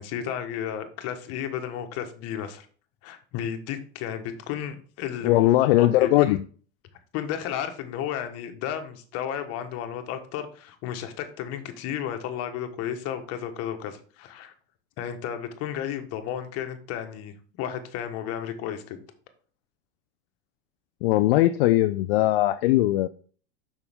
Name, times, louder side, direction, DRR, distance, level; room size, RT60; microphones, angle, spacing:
voice 1, 0.0-2.7 3.0-5.5 5.8-6.4 7.1-14.5 15.0-19.0, left 9 dB, 55° left, 7 dB, 1.4 m, -33 dB
voice 2, 5.2-6.4 21.0-23.1, left 15 dB, 75° left, 11 dB, 0.5 m, -20 dB
7.0 x 5.7 x 3.5 m, 0.42 s
hypercardioid pair, 100°, 29 cm